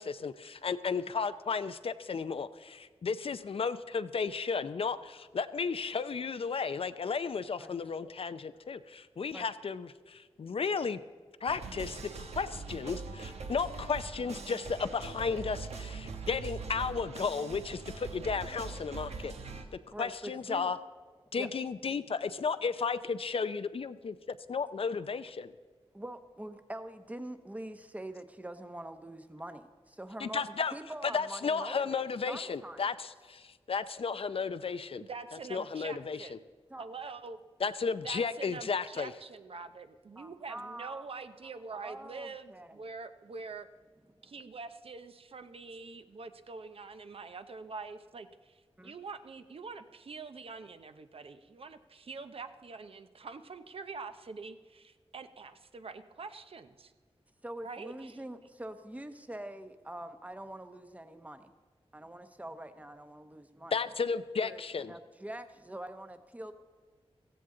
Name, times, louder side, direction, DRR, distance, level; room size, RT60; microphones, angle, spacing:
voice 1, 0.0-11.0 11.4-19.3 20.0-20.8 21.3-25.5 30.2-30.7 31.0-35.0 35.5-36.4 37.6-39.1 63.7-64.9, left 5 dB, 60° left, 12 dB, 0.5 m, -34 dB
sound 1, 11.5-19.6, right 4 dB, 90° right, 1.2 m, -42 dB
voice 2, 19.9-20.7 21.4-21.5 25.9-30.4 30.7-32.8 35.6-35.7 36.7-36.8 40.2-41.1 41.7-42.8 44.2-44.3 48.8-49.0 57.4-61.5 61.9-63.7 64.4-66.5, right 1 dB, 15° right, 9 dB, 0.9 m, -44 dB
voice 3, 35.0-36.4 36.8-37.4 38.0-43.7 44.2-56.9 57.6-58.2, right 4 dB, 60° right, 9 dB, 0.7 m, -45 dB
15.5 x 15.5 x 3.8 m, 1.5 s
wide cardioid pair, 125°, 11 cm